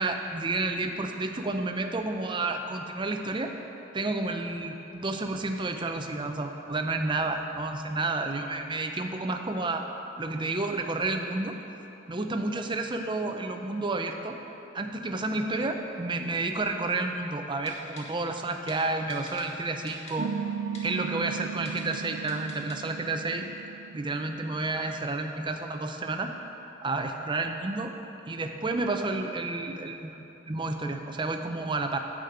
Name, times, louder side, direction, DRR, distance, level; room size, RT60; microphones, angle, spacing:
voice 1, 0.0-3.5 3.9-9.8 10.2-11.6 12.1-14.4 14.7-20.3 20.8-23.5 23.9-26.3 26.8-27.9 28.3-32.0, right 2 dB, 25° right, 5 dB, 0.6 m, -30 dB
Typing, 17.7-18.0 18.7-18.8 19.1-19.4 19.9-20.1 20.7-20.8 21.7-22.0 22.3-22.8 23.1-23.2, left 2 dB, 35° left, 1.5 m, -45 dB
sound 1, 20.2-25.1, right 7 dB, 65° right, 0.4 m, -37 dB
10.0 x 5.1 x 7.9 m, 3.0 s
head